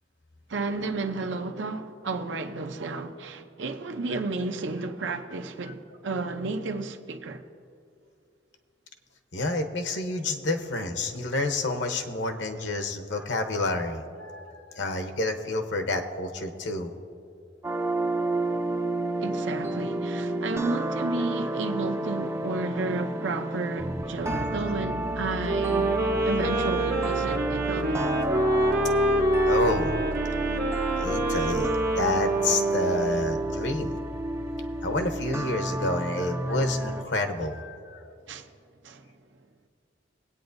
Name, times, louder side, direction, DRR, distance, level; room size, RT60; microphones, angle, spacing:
voice 1, 0.5-7.4 19.2-28.1 38.3-38.5 38.8-39.1, right 3 dB, 80° right, 0.7 m, -32 dB
voice 2, 9.3-16.9 24.3-24.4 29.4-29.9 31.0-34.0 34.8-38.1, left 2 dB, 75° left, 0.9 m, -29 dB
sound 1, 17.6-37.0, right 1 dB, 15° right, 0.4 m, -31 dB
sound 2, 25.4-33.6, right 2 dB, 50° right, 0.8 m, -26 dB
20.0 x 8.8 x 2.6 m
head